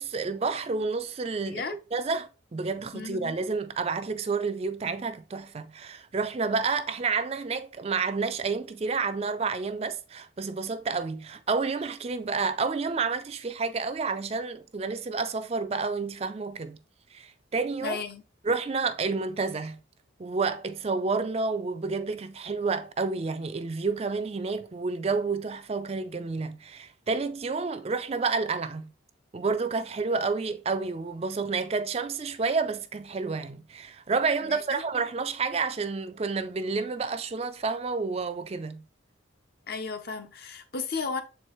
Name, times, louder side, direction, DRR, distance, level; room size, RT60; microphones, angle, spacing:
voice 1, 0.0-1.6 1.9-16.8 17.1-18.0 18.4-19.8 20.2-28.9 29.3-38.8, right 4 dB, 30° right, 0.4 m, -30 dB
voice 2, 2.9-3.4 17.8-18.2 34.4-34.8 39.7-41.2, left 4 dB, 50° left, 0.7 m, -34 dB
7.0 x 4.5 x 3.1 m
head